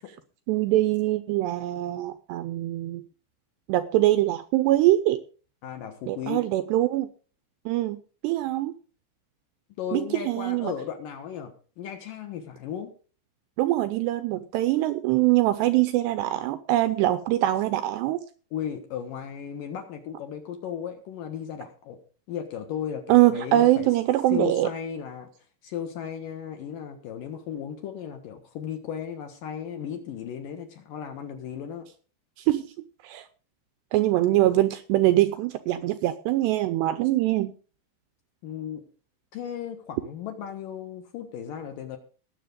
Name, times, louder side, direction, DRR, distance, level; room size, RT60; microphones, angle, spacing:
voice 1, 0.5-3.0 3.7-5.2 6.1-7.1 7.7-8.0 8.2-8.8 9.9-10.7 13.6-18.2 23.1-24.7 32.4-32.7 33.0-33.2 33.9-37.5, right 15 dB, 85° right, 10 dB, 2.5 m, -23 dB
voice 2, 5.6-6.4 9.8-12.9 18.5-22.0 22.3-23.9 24.3-25.3 25.6-31.9 38.4-38.8 39.3-42.0, left 8 dB, 65° left, 6 dB, 2.2 m, -35 dB
19.5 x 7.7 x 3.8 m, 0.37 s
omnidirectional pair, 5.7 m